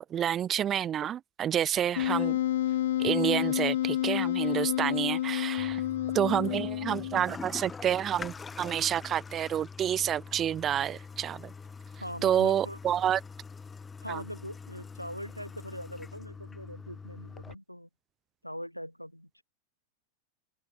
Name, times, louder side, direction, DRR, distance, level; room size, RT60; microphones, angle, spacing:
voice 1, 0.0-2.4 3.0-5.8 6.1-11.5 12.2-13.2 14.1-14.2, right 10 dB, 25° right, 0.6 m, -29 dB
Wind instrument woodwind instrument, 2.0-7.4, left 12 dB, 60° left, 2.4 m, -29 dB
Toilet flush, 5.6-17.5, left 5 dB, 15° left, 1.4 m, -44 dB
voice 2, 12.0-12.8 14.0-17.9 18.4-19.3, equal, 90° left, 6.7 m, -41 dB
open air
figure-of-eight pair, 90°, 0 cm